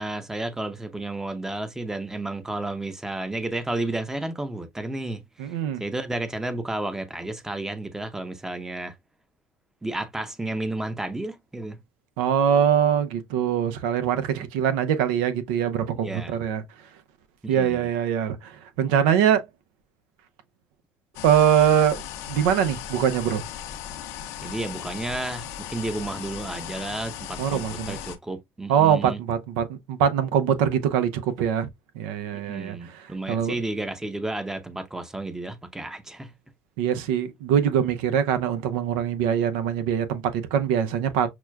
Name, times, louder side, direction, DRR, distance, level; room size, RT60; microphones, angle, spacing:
voice 1, 0.0-8.9 9.8-11.8 14.4-14.5 16.0-16.4 17.4-17.9 24.4-29.2 32.3-36.3, right 2 dB, 10° right, 0.7 m, -32 dB
voice 2, 5.4-5.8 12.2-16.6 17.5-19.4 21.2-22.0 22.3-23.4 27.4-28.0 28.7-31.7 32.0-32.8 33.3-33.5 36.8-41.3, right 9 dB, 80° right, 0.6 m, -23 dB
sound 1, 21.1-28.2, left 10 dB, 75° left, 0.6 m, -37 dB
5.9 x 2.2 x 2.3 m
supercardioid pair, 100°, 5 cm